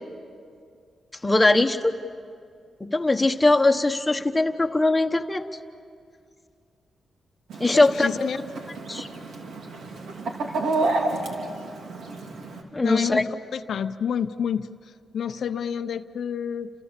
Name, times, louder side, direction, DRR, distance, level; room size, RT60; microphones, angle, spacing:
voice 1, 1.2-2.0 2.8-5.4 7.6-8.1 8.9-9.1 12.7-13.2, left 2 dB, 15° left, 5 dB, 1.1 m, -21 dB
Chicken rooster, 7.5-12.6, right 2 dB, 80° right, 3.0 m, -30 dB
voice 2, 7.7-8.4 12.8-16.7, left 7 dB, 70° left, 9 dB, 0.6 m, -29 dB
30.0 x 27.0 x 7.4 m, 2.3 s
wide cardioid pair, 135°, 0 cm